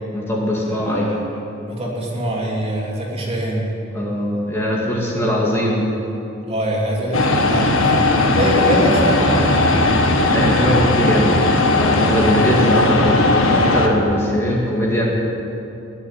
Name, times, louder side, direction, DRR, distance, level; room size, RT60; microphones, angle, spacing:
voice 1, 0.1-1.1 3.9-5.9 10.3-15.1, equal, 10° left, -4 dB, 2.0 m, -20 dB
voice 2, 0.6-1.2 1.7-3.7 6.5-9.8, right 1 dB, 30° right, -3 dB, 3.1 m, -23 dB
sound 1, 7.1-13.9, left 2 dB, 85° left, 1.6 m, -17 dB
20.5 x 7.4 x 9.1 m, 2.9 s
head